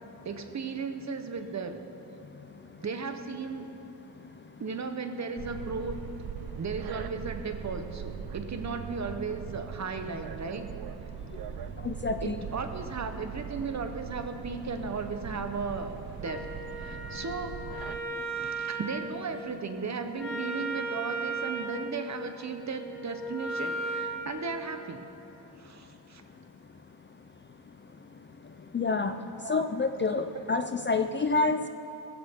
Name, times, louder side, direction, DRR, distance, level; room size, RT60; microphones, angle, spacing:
voice 1, 0.2-1.9 2.8-3.7 4.6-6.0 6.6-10.7 12.2-16.5 16.8-17.6 18.2-25.1 25.6-26.2 29.4-29.6 30.3-30.4, right 4 dB, 40° right, 8 dB, 0.9 m, -36 dB
sound 1, 5.4-18.0, right 8 dB, 60° right, 0.5 m, -40 dB
voice 2, 11.8-12.4 28.7-29.1 29.5-31.7, left 4 dB, 30° left, 8 dB, 0.4 m, -27 dB
Wind instrument woodwind instrument, 16.2-24.2, right 2 dB, 5° left, 3.5 m, -36 dB
19.0 x 16.0 x 3.6 m, 3.0 s
wide cardioid pair, 140°, 41 cm